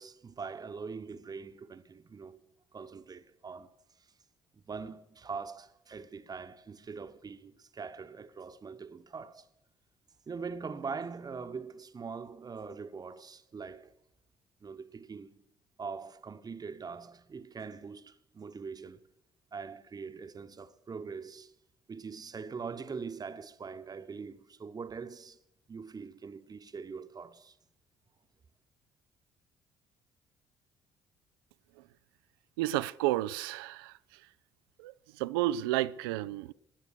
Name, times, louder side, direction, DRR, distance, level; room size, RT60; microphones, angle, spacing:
voice 1, 0.0-2.4 2.7-4.1 4.5-9.5 10.3-13.9 14.6-15.4 15.8-19.0 19.5-21.5 21.9-25.4 25.7-27.6, right 5 dB, 35° right, 1.1 m, -42 dB
voice 2, 32.6-33.9 34.8-36.5, right 15 dB, 75° right, 0.5 m, -31 dB
19.5 x 9.4 x 6.7 m
figure-of-eight pair, 50°, 12 cm